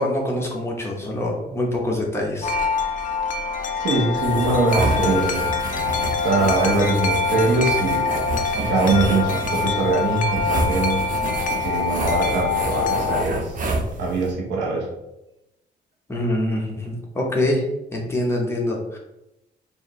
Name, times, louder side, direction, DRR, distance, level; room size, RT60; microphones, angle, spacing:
voice 1, 0.0-2.6 16.1-17.7 17.9-19.0, left 1 dB, 15° left, -2 dB, 0.9 m, -25 dB
Wind chime, 2.4-13.2, left 4 dB, 50° left, 0.4 m, -24 dB
voice 2, 3.5-5.5 6.0-8.1 8.6-11.0 11.6-13.6 14.0-14.9, right 3 dB, 90° right, -2 dB, 1.2 m, -23 dB
sound 1, 4.2-14.3, right 2 dB, 50° right, 0.7 m, -28 dB
4.6 x 2.6 x 3.1 m, 0.90 s
cardioid pair, 135°, 18 cm